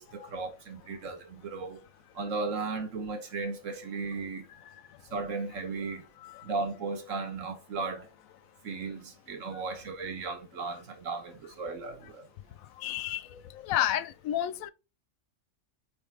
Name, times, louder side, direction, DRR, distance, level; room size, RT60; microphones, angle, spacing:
voice 1, 0.0-1.8 2.1-4.5 5.1-6.1 6.4-8.1 8.6-12.3, right 4 dB, 70° right, 1.5 m, -36 dB
voice 2, 12.8-13.2 13.7-14.7, left 12 dB, 85° left, 1.0 m, -30 dB
8.5 x 3.5 x 3.4 m
omnidirectional pair, 1.4 m